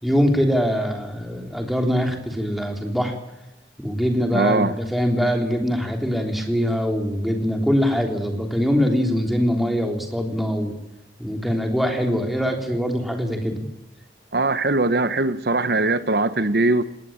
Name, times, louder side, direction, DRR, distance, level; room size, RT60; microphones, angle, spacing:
voice 1, 0.0-3.2 3.8-10.8 11.2-13.7, equal, ahead, 3.6 m, -23 dB
voice 2, 4.3-4.7 14.3-16.8, right 2 dB, 60° right, 1.0 m, -21 dB
19.5 x 18.5 x 8.8 m
head